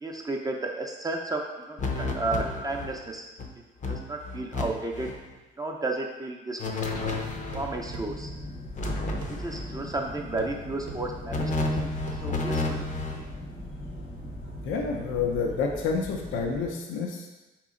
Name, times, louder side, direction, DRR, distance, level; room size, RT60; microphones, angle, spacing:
voice 1, 0.0-3.3 3.9-5.1 5.6-6.6 7.5-8.3 9.4-11.9 12.2-12.9, right 2 dB, 20° right, 1 dB, 0.4 m, -33 dB
sound 1, 1.8-3.0 3.4-3.5 3.8-4.6 4.9-5.2 6.6-7.7 8.8-9.7 11.3-13.3, left 2 dB, 40° left, 0.6 m, -31 dB
sound 2, 6.7-6.9 7.5-8.1 9.2-9.4 10.4-10.6 10.9-11.0 12.1-12.2, right 3 dB, 85° right, 0.6 m, -41 dB
sound 3, 6.8-16.7, left 1 dB, 65° left, 1.1 m, -40 dB
voice 2, 14.6-17.3, left 5 dB, 85° left, 1 dB, 0.5 m, -29 dB
4.1 x 3.0 x 3.7 m, 1.1 s
cardioid pair, 90°, 20 cm